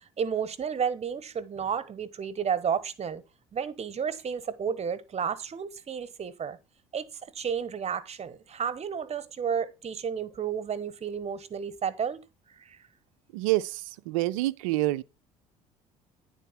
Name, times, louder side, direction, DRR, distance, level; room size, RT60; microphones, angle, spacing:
voice 1, 0.2-3.2 3.5-6.6 6.9-7.1 7.3-12.2 12.6-12.8, right 7 dB, 40° right, 1.1 m, -32 dB
voice 2, 13.3-15.0, right 18 dB, 75° right, 0.5 m, -27 dB
10.0 x 4.3 x 5.7 m
hypercardioid pair, 55°, 17 cm